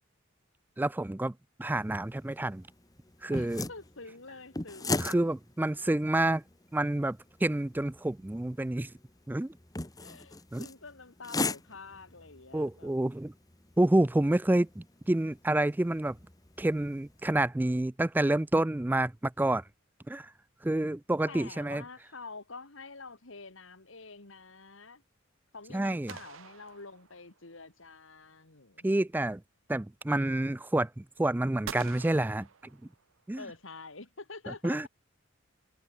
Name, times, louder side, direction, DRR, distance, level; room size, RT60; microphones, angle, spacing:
voice 1, 0.8-2.6 3.2-3.6 5.0-6.4 6.7-8.9 9.3-9.5 10.5-10.7 12.5-13.3 13.8-16.2 16.6-19.6 20.1-20.3 20.6-21.8 25.7-26.1 28.8-29.4 29.7-32.5 33.3-33.4 34.6-34.9, right 1 dB, 10° right, 0.3 m, -28 dB
sound 1, 1.6-17.4, left 2 dB, 20° left, 1.5 m, -40 dB
voice 2, 3.3-5.4 10.0-12.9 21.3-25.0 25.5-28.9 33.4-34.9, left 3 dB, 75° left, 2.5 m, -47 dB
sound 2, 26.1-27.5 31.6-33.2, right 7 dB, 80° right, 0.9 m, -46 dB
head